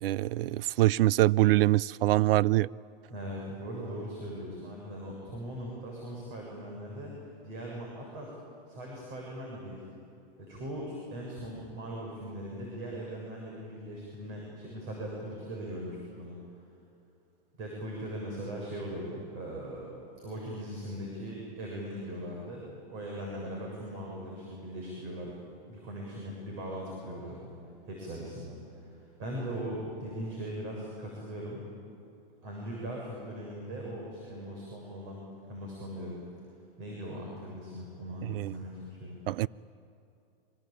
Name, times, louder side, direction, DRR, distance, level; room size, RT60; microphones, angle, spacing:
voice 1, 0.0-2.7 38.2-38.5 39.3-39.5, right 17 dB, 75° right, 0.6 m, -24 dB
voice 2, 3.1-7.1 7.4-8.3 8.7-9.8 10.4-16.4 17.6-19.9 20.2-25.3 25.7-27.5 27.9-31.7 32.4-35.2 35.5-36.2 36.8-39.2, equal, 40° right, 7.2 m, -40 dB
25.5 x 23.5 x 8.9 m
hypercardioid pair, 130°, 29 cm